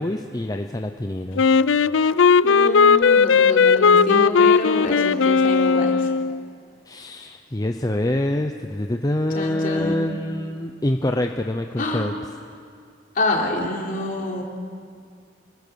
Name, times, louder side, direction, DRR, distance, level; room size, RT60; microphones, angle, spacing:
voice 1, 0.0-1.4 6.9-12.1, left 1 dB, 20° left, 5 dB, 0.7 m, -25 dB
Wind instrument woodwind instrument, 1.4-6.4, left 5 dB, 75° left, 0.5 m, -17 dB
voice 2, 2.4-6.1 9.3-10.1 11.8-12.1 13.2-14.4, left 2 dB, 45° left, 0 dB, 3.5 m, -27 dB
28.0 x 21.0 x 7.0 m, 2.2 s
head